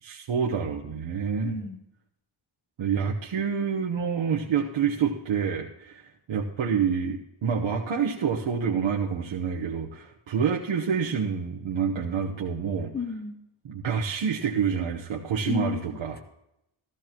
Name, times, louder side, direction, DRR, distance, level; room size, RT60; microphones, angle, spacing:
voice 1, 0.0-1.5 2.8-12.9 13.6-16.2, right 6 dB, 65° right, -1 dB, 1.1 m, -27 dB
voice 2, 1.4-1.8 12.9-13.4 15.5-16.2, left 6 dB, 20° left, 6 dB, 0.7 m, -33 dB
15.0 x 14.0 x 3.0 m, 0.84 s
wide cardioid pair, 175°, 49 cm